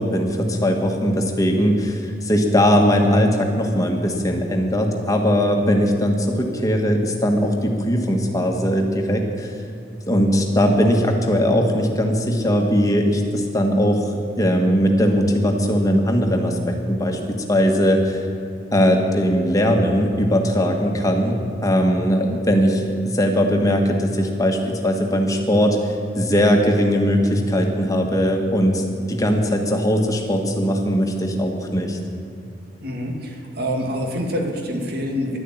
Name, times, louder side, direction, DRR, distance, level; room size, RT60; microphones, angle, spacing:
voice 1, 0.0-9.5 10.1-14.0 14.4-18.2 18.7-25.8 26.1-28.8 29.1-32.0, equal, 20° left, 2 dB, 1.5 m, -19 dB
voice 2, 32.8-35.4, equal, 60° right, 1 dB, 2.3 m, -26 dB
11.5 x 11.0 x 8.9 m, 2.6 s
head